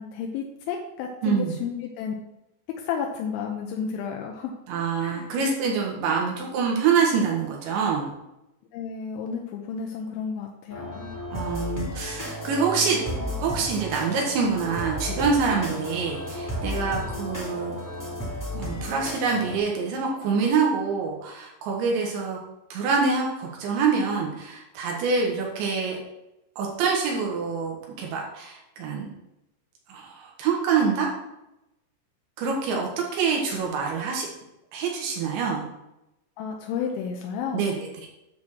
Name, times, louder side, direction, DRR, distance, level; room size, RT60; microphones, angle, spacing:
voice 1, 0.0-2.1 2.8-4.5 5.0-5.3 8.7-11.2 36.4-37.7, left 6 dB, 85° left, 1 dB, 3.2 m, -32 dB
voice 2, 1.2-1.6 4.7-8.1 11.3-13.0 13.4-17.8 18.5-22.4 22.7-26.0 26.6-29.1 29.9-31.1 32.4-34.3 34.7-35.7 37.5-38.1, right 5 dB, 80° right, -1 dB, 3.7 m, -26 dB
sound 1, 10.7-19.6, left 1 dB, 15° left, 0.6 m, -33 dB
9.4 x 4.4 x 7.2 m, 0.89 s
omnidirectional pair, 5.3 m